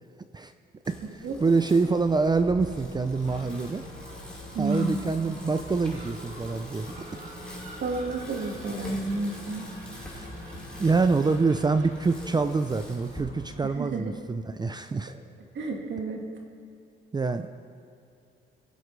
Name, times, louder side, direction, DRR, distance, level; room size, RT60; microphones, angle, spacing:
Bicycle, 0.8-13.2, equal, 5° left, 2.8 m, -46 dB
Gull seagull, 1.3-13.7, right 2 dB, 80° right, 3.0 m, -47 dB
voice 1, 1.4-3.8 4.6-7.1 10.1-10.3 10.8-15.1 17.1-17.5, right 4 dB, 20° right, 9 dB, 0.5 m, -26 dB
sound 1, 3.2-12.9, left 2 dB, 35° left, 3.1 m, -45 dB
voice 2, 4.5-5.1 7.8-9.7 13.6-14.1 15.5-16.3, right 3 dB, 65° right, 1 dB, 1.9 m, -31 dB
20.5 x 7.8 x 3.3 m, 2.6 s
cardioid pair, 90°, 20 cm